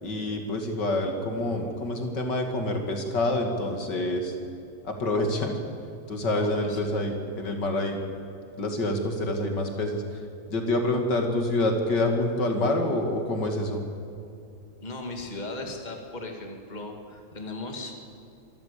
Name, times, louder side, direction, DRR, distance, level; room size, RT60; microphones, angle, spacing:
voice 1, 0.0-4.3 4.8-5.6 6.1-8.0 8.6-10.0 10.5-13.8, left 1 dB, 65° left, 4 dB, 2.8 m, -27 dB
voice 2, 6.3-6.8 14.8-17.9, left 2 dB, 20° left, 3 dB, 2.4 m, -37 dB
25.0 x 13.5 x 8.5 m, 2.7 s
omnidirectional pair, 2.0 m